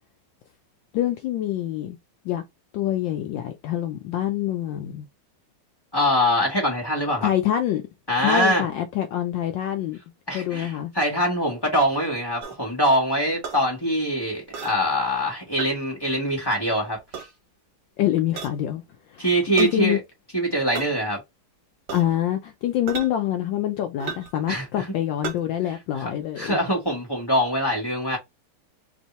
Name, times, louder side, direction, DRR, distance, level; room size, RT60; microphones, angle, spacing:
voice 1, 0.9-2.0 2.2-2.4 2.7-5.1 7.2-7.8 8.2-10.0 10.3-10.9 18.0-18.8 19.1-19.3 19.6-20.0 21.9-26.6, left 12 dB, 75° left, 1.2 m, -25 dB
voice 2, 5.9-7.3 8.1-8.6 10.3-17.3 19.2-20.0 20.3-21.2 24.5-24.8 26.4-28.2, equal, 15° left, 1.2 m, -23 dB
sound 1, 12.4-12.6 13.4-13.6 14.5-14.8 15.6-15.7 17.0-17.3 18.4-18.6 19.6-19.7 20.7-20.9 21.9-22.1 22.9-23.1 24.0-24.3 25.2-25.4, right 6 dB, 55° right, 1.6 m, -33 dB
3.4 x 2.7 x 4.1 m
omnidirectional pair, 2.2 m